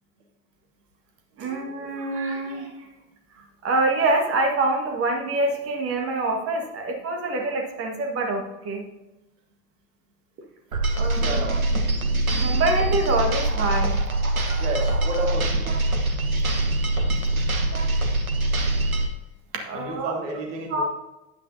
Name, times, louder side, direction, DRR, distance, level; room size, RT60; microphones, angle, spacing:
voice 1, 1.4-2.9 3.4-8.9 10.9-11.4 12.4-14.0 19.6-20.1 20.7-20.8, right 2 dB, 30° right, 2 dB, 1.7 m, -26 dB
sound 1, 10.7-19.1, right 1 dB, 85° right, 1.2 m, -23 dB
voice 2, 11.2-11.6 14.6-15.7 19.7-20.8, right 1 dB, 60° right, 2 dB, 1.6 m, -31 dB
9.9 x 9.0 x 2.8 m, 1.0 s
figure-of-eight pair, 80°, 42 cm